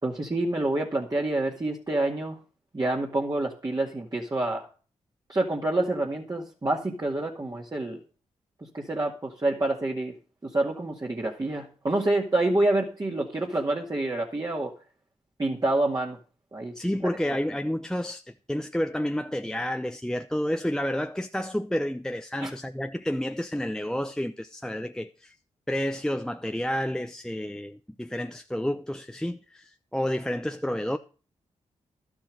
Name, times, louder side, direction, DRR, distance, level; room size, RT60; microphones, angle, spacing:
voice 1, 0.0-2.4 2.7-4.7 5.3-8.0 8.7-10.1 10.4-14.7 15.4-16.2 16.5-16.7 22.4-22.5, right 2 dB, 30° right, 2.1 m, -27 dB
voice 2, 16.8-25.3 25.7-31.0, equal, 5° left, 0.7 m, -30 dB
12.0 x 7.3 x 6.4 m
supercardioid pair, 40°, 13 cm